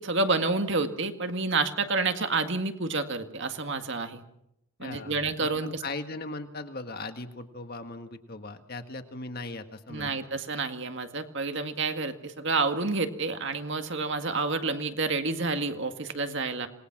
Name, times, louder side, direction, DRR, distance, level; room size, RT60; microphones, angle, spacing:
voice 1, 0.0-4.2 4.8-5.8 9.9-16.7, right 3 dB, 55° right, 6 dB, 2.0 m, -29 dB
voice 2, 4.8-10.3, left 2 dB, 45° left, 7 dB, 1.7 m, -39 dB
27.0 x 20.0 x 6.1 m, 0.79 s
head